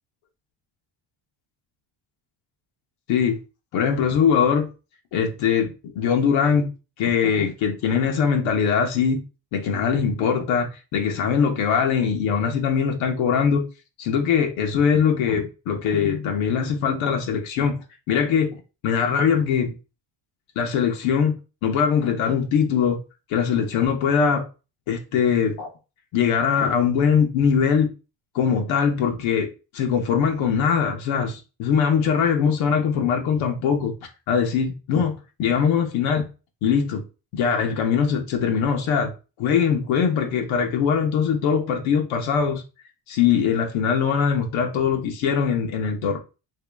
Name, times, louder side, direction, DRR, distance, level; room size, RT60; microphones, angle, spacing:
voice 1, 3.7-4.7 5.1-6.7 7.0-9.2 9.5-13.7 14.0-17.8 18.1-19.8 20.6-21.3 21.6-23.0 23.3-24.5 24.9-25.7 26.1-27.9 28.3-33.9 34.3-36.3 36.6-37.0 37.3-39.1 39.4-42.6 43.1-46.2, left 7 dB, 85° left, 0.8 m, -22 dB
3.0 x 2.8 x 3.3 m
cardioid pair, 130°, 46 cm